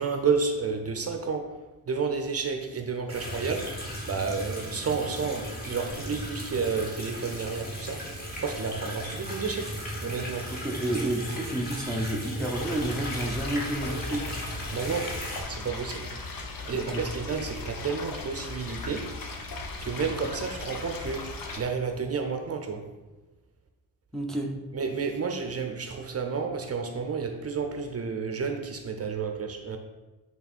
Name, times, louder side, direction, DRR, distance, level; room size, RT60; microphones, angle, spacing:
voice 1, 0.0-1.6 1.9-10.5 14.7-15.2 15.5-16.1 16.7-19.2 19.8-22.9 24.7-29.8, right 5 dB, 40° right, 5 dB, 0.6 m, -31 dB
sound 1, 3.1-15.4, equal, 25° left, 1.4 m, -36 dB
voice 2, 10.6-14.3 16.7-17.0 24.1-24.5, right 1 dB, ahead, -1 dB, 0.6 m, -30 dB
sound 2, 12.5-21.6, left 3 dB, 65° left, 0.9 m, -38 dB
8.4 x 3.6 x 4.2 m, 1.2 s
wide cardioid pair, 170°, 37 cm